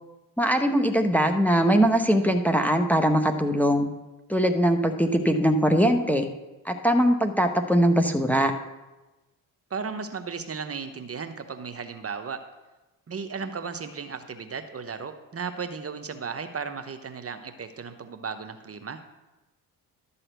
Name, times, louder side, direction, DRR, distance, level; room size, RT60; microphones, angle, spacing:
voice 1, 0.4-3.9 4.3-6.3 6.7-8.5, equal, 5° left, 5 dB, 0.9 m, -21 dB
voice 2, 9.7-12.4 13.1-19.0, right 5 dB, 35° right, 8 dB, 0.9 m, -35 dB
12.0 x 4.2 x 8.0 m, 1.1 s
supercardioid pair, 65°, 41 cm